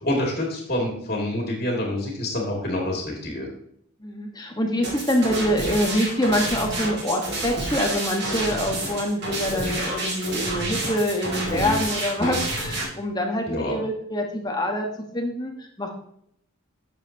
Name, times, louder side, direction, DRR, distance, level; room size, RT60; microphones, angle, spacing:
voice 1, 0.0-3.5 11.5-11.8 12.2-12.4 13.5-13.8, left 1 dB, 40° left, -1 dB, 2.3 m, -27 dB
voice 2, 4.0-15.9, equal, 20° left, 2 dB, 1.2 m, -25 dB
sound 1, 4.8-12.8, right 2 dB, 50° right, 2.5 m, -29 dB
11.0 x 7.4 x 2.8 m, 0.70 s
head